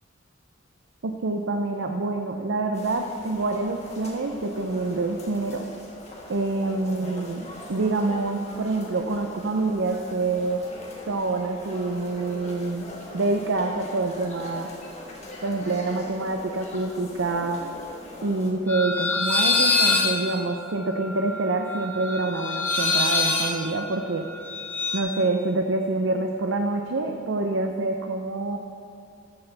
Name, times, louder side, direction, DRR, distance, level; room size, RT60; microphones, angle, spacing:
voice 1, 1.0-5.7 6.3-10.6 11.1-12.9 13.1-14.7 15.4-17.6 18.2-24.3 24.9-28.6, right 3 dB, 85° right, 4 dB, 0.6 m, -26 dB
sound 1, 2.7-18.5, left 1 dB, 35° left, 1.6 m, -41 dB
sound 2, 18.7-25.0, left 3 dB, 10° left, 0.9 m, -25 dB
14.0 x 7.9 x 3.4 m, 2.4 s
head